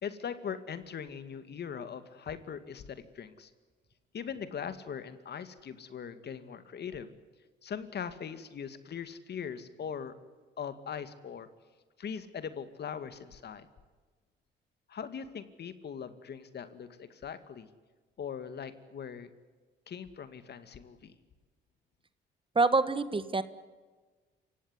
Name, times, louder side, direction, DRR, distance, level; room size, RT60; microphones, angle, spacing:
voice 1, 0.0-3.5 4.1-7.1 7.6-10.1 10.6-11.5 12.0-13.7 14.9-17.7 18.2-19.3 19.9-21.1, left 7 dB, 55° left, 11 dB, 2.3 m, -40 dB
voice 2, 22.5-23.4, right 3 dB, 25° right, 13 dB, 1.5 m, -26 dB
27.5 x 16.5 x 9.7 m, 1.4 s
cardioid pair, 90°, 20 cm